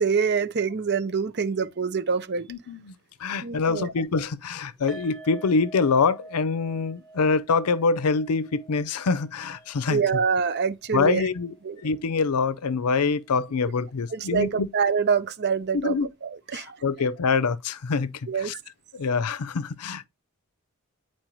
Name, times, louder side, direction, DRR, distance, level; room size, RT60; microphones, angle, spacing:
voice 1, 0.0-2.5 3.4-3.9 9.9-11.2 11.6-11.8 14.1-16.0 16.2-16.8 18.3-18.5, right 6 dB, 50° right, 0.6 m, -25 dB
voice 2, 2.5-2.9 3.2-10.0 10.9-14.7 15.7-16.1 16.5-18.6 18.9-20.1, left 4 dB, 85° left, 0.5 m, -25 dB
sound 1, 4.9-12.1 12.3-12.5 12.9-13.0, right 2 dB, 5° left, 1.0 m, -48 dB
9.0 x 4.4 x 3.0 m
head